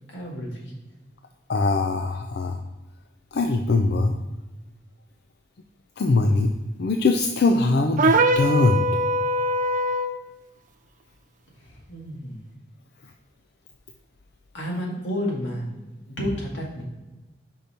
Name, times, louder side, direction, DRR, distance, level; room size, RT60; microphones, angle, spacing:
voice 1, 0.1-0.7 11.6-12.4 14.5-15.7 16.1-16.8, equal, 85° left, -2 dB, 1.9 m, -31 dB
voice 2, 1.5-2.6 3.3-4.1 6.0-6.5 6.8-8.8, left 3 dB, 60° left, 4 dB, 0.4 m, -21 dB
sound 1, 8.0-10.2, right 1 dB, 45° right, 0.4 m, -22 dB
5.5 x 5.2 x 4.3 m, 1.1 s
head